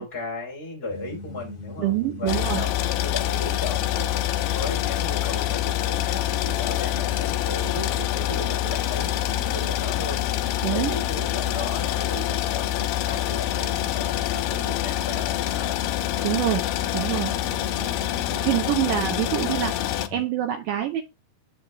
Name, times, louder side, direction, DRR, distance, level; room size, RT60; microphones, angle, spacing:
voice 1, 0.0-2.7 3.0-10.2 10.7-15.8 17.3-18.5, left 2 dB, 15° left, 2.4 m, -36 dB
sound 1, 0.9-20.2, left 2 dB, 55° left, 2.2 m, -39 dB
voice 2, 1.8-2.6 10.6-11.0 16.2-17.4 18.4-21.0, right 13 dB, 90° right, 1.8 m, -26 dB
sound 2, 2.3-20.1, left 14 dB, 80° left, 2.5 m, -26 dB
7.6 x 5.9 x 3.1 m
omnidirectional pair, 4.7 m